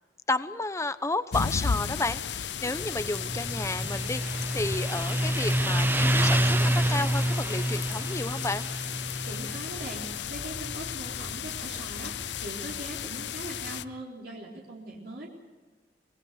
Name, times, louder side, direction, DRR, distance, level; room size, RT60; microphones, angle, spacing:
voice 1, 0.3-8.7, left 2 dB, 15° left, 12 dB, 0.9 m, -32 dB
sound 1, 1.3-13.8, left 7 dB, 75° left, 0.6 m, -35 dB
Motorcycle, 2.8-13.9, right 1 dB, 10° right, 0.6 m, -29 dB
voice 2, 9.3-15.3, right 1 dB, 60° right, -2 dB, 4.1 m, -41 dB
25.5 x 21.5 x 6.6 m, 1.3 s
head